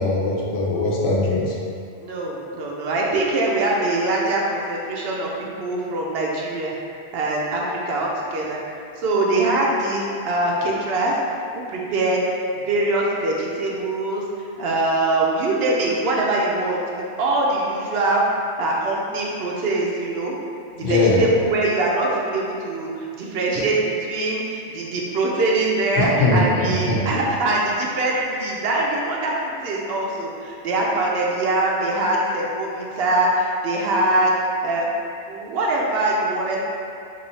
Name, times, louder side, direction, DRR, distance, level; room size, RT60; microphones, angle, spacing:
voice 1, 0.0-1.5 20.8-21.3 26.0-27.1, left 2 dB, 70° left, -4 dB, 0.9 m, -21 dB
voice 2, 2.0-5.3 5.6-6.7 7.1-8.6 9.0-11.1 11.5-12.2 12.7-14.2 14.6-18.2 18.6-20.3 20.7-22.9 23.2-34.3 34.6-34.9 35.3-36.6, right 2 dB, 65° right, -3 dB, 0.7 m, -23 dB
3.2 x 2.6 x 4.0 m, 2.5 s
omnidirectional pair, 1.2 m